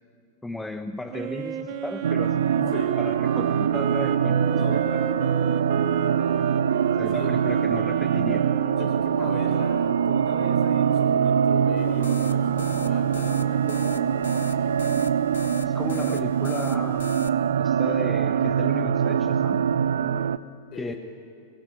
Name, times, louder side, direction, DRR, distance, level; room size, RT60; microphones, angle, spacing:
voice 1, 0.4-5.1 7.0-8.5 15.6-17.1 17.6-19.7 20.8-20.9, left 2 dB, 5° left, 9 dB, 0.8 m, -35 dB
Wind instrument woodwind instrument, 1.1-9.2, right 7 dB, 45° right, 1.8 m, -34 dB
sound 1, 2.0-20.4, right 8 dB, 65° right, 0.5 m, -23 dB
voice 2, 4.5-4.9 7.1-7.3 8.7-14.8 20.7-21.0, left 4 dB, 35° left, 3 dB, 4.9 m, -39 dB
sound 2, 11.8-17.3, left 9 dB, 65° left, 0.9 m, -40 dB
22.5 x 21.5 x 8.9 m, 2.4 s
figure-of-eight pair, 90°, 0 cm